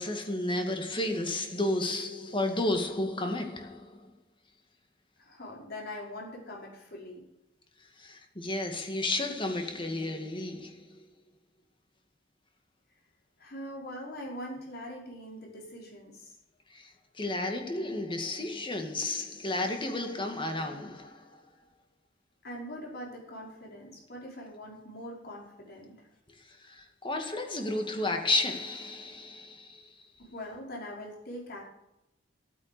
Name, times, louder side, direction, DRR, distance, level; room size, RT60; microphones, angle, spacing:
voice 1, 0.0-4.1 8.0-11.1 16.7-21.4 26.5-29.9, left 2 dB, 25° left, 2.1 m, -32 dB
voice 2, 5.2-7.2 13.4-16.4 22.4-26.1 30.2-31.7, left 1 dB, 55° left, 5.2 m, -42 dB
13.0 x 9.4 x 6.8 m
head